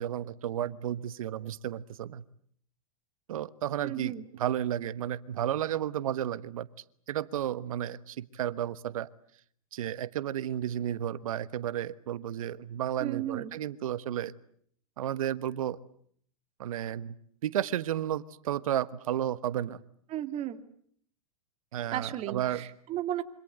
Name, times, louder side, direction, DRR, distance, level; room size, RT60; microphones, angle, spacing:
voice 1, 0.0-2.2 3.3-6.7 7.1-9.1 9.7-14.3 15.0-15.8 16.6-17.1 17.4-19.8 21.7-22.6, right 11 dB, 70° right, 15 dB, 1.3 m, -32 dB
voice 2, 3.8-4.2 13.0-13.6 20.1-20.6 21.9-23.2, right 12 dB, 35° right, 8 dB, 2.4 m, -34 dB
26.5 x 25.5 x 8.0 m, 0.62 s
hypercardioid pair, 115°, 19 cm